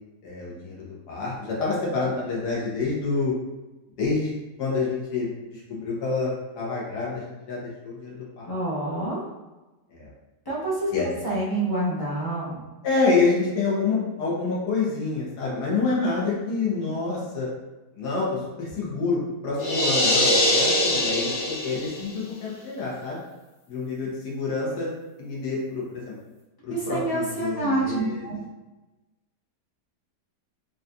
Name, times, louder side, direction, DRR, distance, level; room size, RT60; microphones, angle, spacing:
voice 1, 0.2-3.4 4.0-8.4 9.9-10.1 10.9-11.1 12.8-17.5 17.9-23.2 23.7-24.9 25.2-26.1 26.6-28.3, left 4 dB, 75° left, -5 dB, 1.5 m, -27 dB
voice 2, 8.4-9.2 10.5-10.9 11.2-12.6 26.7-28.4, right 2 dB, 30° left, -8 dB, 0.4 m, -27 dB
sound 1, 19.6-22.1, left 1 dB, 60° left, 1.0 m, -22 dB
3.9 x 2.6 x 2.2 m, 1.1 s
omnidirectional pair, 1.7 m